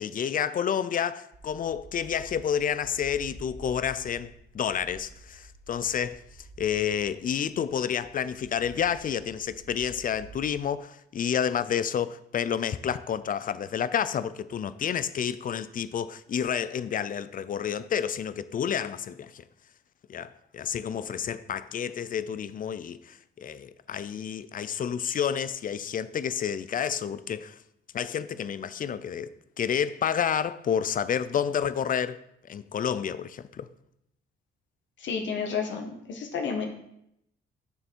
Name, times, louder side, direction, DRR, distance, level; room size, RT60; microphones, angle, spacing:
voice 1, 0.0-6.2 6.6-19.4 20.1-27.6 27.9-32.2 32.5-33.7, left 8 dB, 45° left, 0.5 m, -30 dB
sound 1, 1.3-10.5, right 2 dB, 35° right, 1.2 m, -49 dB
voice 2, 35.0-36.7, left 5 dB, 70° left, 1.3 m, -31 dB
6.8 x 6.6 x 4.5 m
cardioid pair, 90°, 20 cm